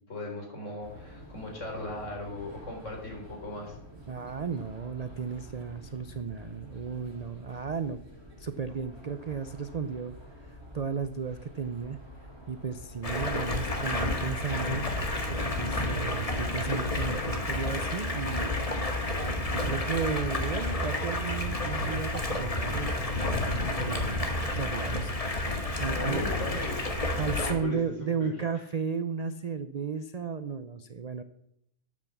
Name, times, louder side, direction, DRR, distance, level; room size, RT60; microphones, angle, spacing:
voice 1, 0.1-3.7 25.9-26.9 27.5-27.9 28.2-28.6, left 1 dB, 60° left, 0 dB, 4.1 m, -38 dB
sound 1, 0.8-15.8, equal, 15° right, 3.0 m, -48 dB
voice 2, 4.1-8.0 8.4-12.0 12.5-14.9 15.3-18.6 19.5-23.2 23.5-25.1 25.8-26.2 27.2-31.2, right 6 dB, 45° right, 10 dB, 0.5 m, -34 dB
Stream, 13.0-27.5, left 1 dB, 25° left, 1.7 m, -30 dB
12.0 x 8.7 x 7.2 m, 0.78 s
omnidirectional pair, 1.5 m